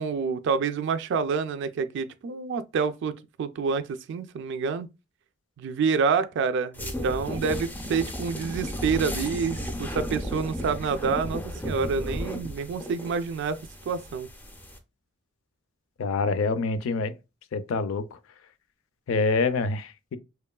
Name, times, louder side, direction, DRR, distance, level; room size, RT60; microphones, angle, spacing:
voice 1, 0.0-4.9 5.6-13.6 13.9-14.3, right 5 dB, 60° right, 0.3 m, -28 dB
sound 1, 6.7-14.8, equal, 10° left, 0.5 m, -34 dB
voice 2, 16.0-17.1 17.5-18.1 19.1-20.2, left 4 dB, 80° left, 0.4 m, -26 dB
3.0 x 2.2 x 2.2 m
head